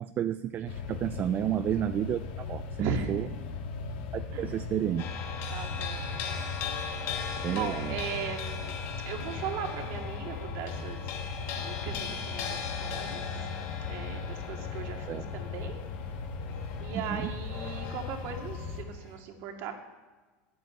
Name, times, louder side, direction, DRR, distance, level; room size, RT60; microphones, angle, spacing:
voice 1, 0.0-3.2 4.1-5.1 7.4-7.9 15.1-15.2 16.9-17.3, right 10 dB, 35° right, 11 dB, 0.5 m, -31 dB
sound 1, 0.7-18.8, left 5 dB, 75° left, 2.0 m, -38 dB
voice 2, 2.8-3.4 4.3-4.7 5.5-6.5 7.0-8.8 9.1-11.2 11.5-15.8 16.8-19.7, right 6 dB, 55° right, 3 dB, 2.4 m, -38 dB
sound 2, 5.0-19.2, left 5 dB, 55° left, 2.4 m, -39 dB
10.5 x 9.5 x 8.1 m, 1.3 s
supercardioid pair, 125°, 6 cm